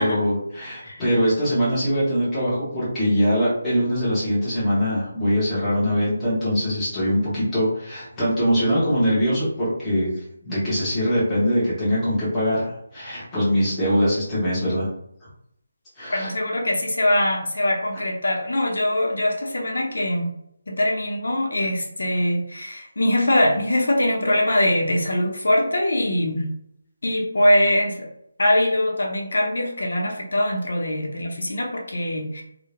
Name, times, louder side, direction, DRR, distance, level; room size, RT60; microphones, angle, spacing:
voice 1, 0.0-10.1 10.4-14.9 16.0-16.3, equal, 5° left, -12 dB, 0.7 m, -22 dB
voice 2, 16.1-20.3 20.7-26.5 27.0-28.1 28.4-32.4, left 1 dB, 85° left, 1 dB, 0.7 m, -22 dB
2.3 x 2.1 x 2.9 m, 0.74 s
hypercardioid pair, 180°, 0 cm